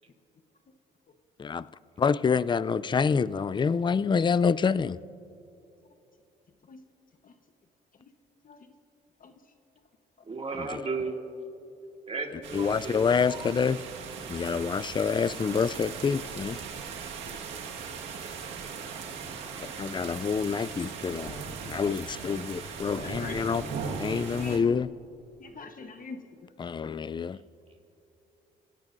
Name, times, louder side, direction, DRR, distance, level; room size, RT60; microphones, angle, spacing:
voice 1, 2.0-5.0 10.6-10.8 12.5-13.8 14.3-16.6 19.7-23.6 24.0-24.9 26.6-27.4, left 6 dB, 25° left, 0.4 m, -27 dB
voice 2, 9.2-9.5 10.2-10.3 17.3-17.6 21.4-21.5 23.0-23.4 24.1-24.6 25.4-26.7, left 4 dB, 45° left, 1.1 m, -45 dB
voice 3, 10.3-11.2 12.1-13.5, right 4 dB, 30° right, 2.4 m, -35 dB
sound 1, 12.4-24.6, right 5 dB, 80° right, 1.7 m, -39 dB
27.5 x 17.0 x 2.6 m
supercardioid pair, 75°, 19 cm